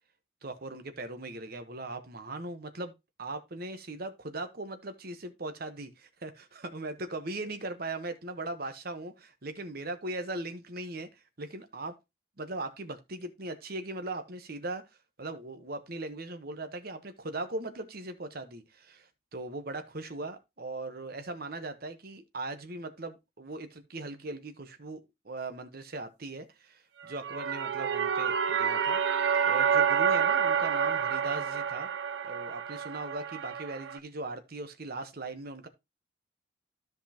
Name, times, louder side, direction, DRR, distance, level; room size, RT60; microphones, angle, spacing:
voice 1, 0.4-2.9 3.2-11.9 12.4-14.8 15.2-29.1 29.5-31.9 32.2-35.7, right 2 dB, 50° right, 1.0 m, -39 dB
sound 1, 27.0-34.0, right 7 dB, 65° right, 0.5 m, -28 dB
13.0 x 5.3 x 2.9 m
head